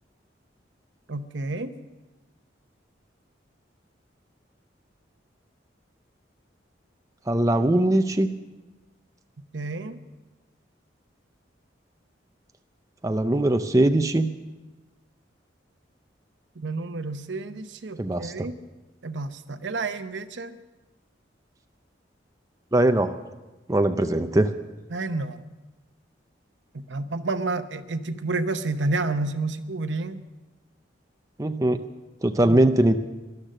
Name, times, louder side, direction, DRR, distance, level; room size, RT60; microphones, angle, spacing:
voice 1, 1.1-1.7 9.5-10.0 16.6-18.5 19.0-20.6 24.9-25.4 26.7-30.2 32.4-32.6, right 3 dB, 75° right, 10 dB, 0.8 m, -30 dB
voice 2, 7.3-8.3 13.0-14.3 18.0-18.5 22.7-23.2 23.7-24.5 31.4-31.8 32.2-33.0, right 1 dB, 20° right, 7 dB, 0.5 m, -21 dB
13.0 x 11.5 x 7.5 m, 1.1 s
head